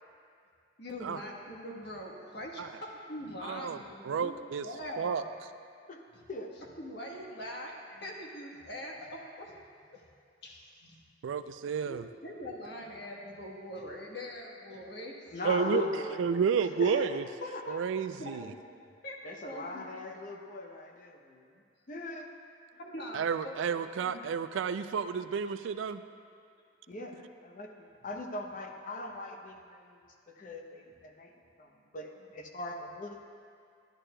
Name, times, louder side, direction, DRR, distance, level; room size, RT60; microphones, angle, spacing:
voice 1, 0.8-4.3 4.6-5.3 6.8-9.5 9.8-10.1 10.4-11.0 11.8-15.1 18.2-18.6 19.0-19.9 22.7-23.6 24.0-24.2, equal, 60° left, -2 dB, 1.3 m, -43 dB
voice 2, 3.4-3.8 4.0-4.7 5.0-5.2 11.2-12.1 15.4-15.8 16.2-17.2 17.7-18.5 23.1-26.0, right 6 dB, 80° right, 12 dB, 0.3 m, -31 dB
voice 3, 15.3-16.2 16.8-17.1 17.4-17.9 19.2-21.5 21.9-22.3 23.4-23.9 26.9-30.0 30.3-33.2, left 2 dB, 45° left, 3 dB, 0.7 m, -40 dB
11.5 x 11.0 x 2.2 m, 2.3 s
head